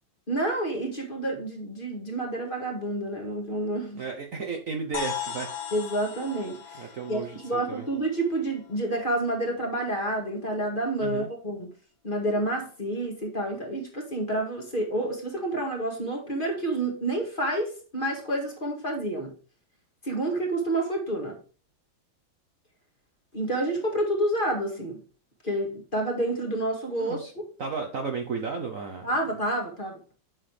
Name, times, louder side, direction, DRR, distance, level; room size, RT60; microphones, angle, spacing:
voice 1, 0.3-4.0 5.7-11.7 12.0-19.3 20.0-21.4 23.3-25.0 25.4-27.2 29.0-30.0, right 1 dB, 30° left, 1.9 m, -29 dB
voice 2, 3.9-5.5 6.8-7.8 11.0-11.3 27.0-27.3 27.6-29.1, right 5 dB, 55° right, 1.1 m, -33 dB
sound 1, 4.9-8.7, left 8 dB, 70° left, 1.6 m, -38 dB
7.7 x 6.3 x 3.4 m
omnidirectional pair, 2.1 m